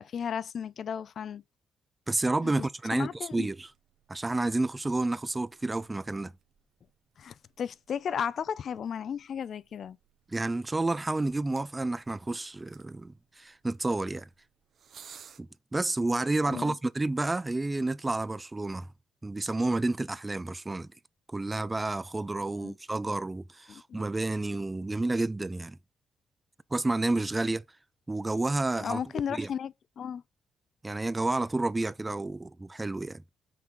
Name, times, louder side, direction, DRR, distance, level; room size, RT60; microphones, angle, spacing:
voice 1, 0.0-1.4 2.4-3.5 7.2-10.0 16.5-16.8 22.5-22.7 23.7-24.0 28.8-30.2, left 7 dB, 55° left, 0.4 m, -35 dB
voice 2, 2.1-3.7 4.1-6.3 10.3-14.3 15.4-18.9 19.2-20.9 21.3-25.8 26.7-27.6 28.1-29.0 29.3-29.5 30.8-33.2, right 2 dB, 15° right, 0.4 m, -30 dB
sound 1, 3.4-15.4, right 7 dB, 60° right, 0.9 m, -59 dB
5.9 x 4.5 x 3.7 m
cardioid pair, 90°, 0 cm